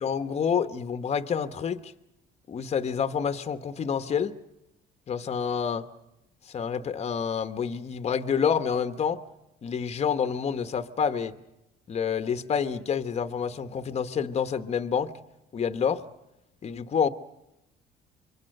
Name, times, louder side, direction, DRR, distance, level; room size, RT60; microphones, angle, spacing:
voice 1, 0.0-1.9 2.5-4.4 5.1-5.9 6.5-9.2 9.6-11.4 11.9-15.1 15.5-16.0 16.6-17.1, left 7 dB, 40° left, 10 dB, 1.2 m, -28 dB
26.5 x 23.0 x 6.6 m, 0.93 s
cardioid pair, 110°, 17 cm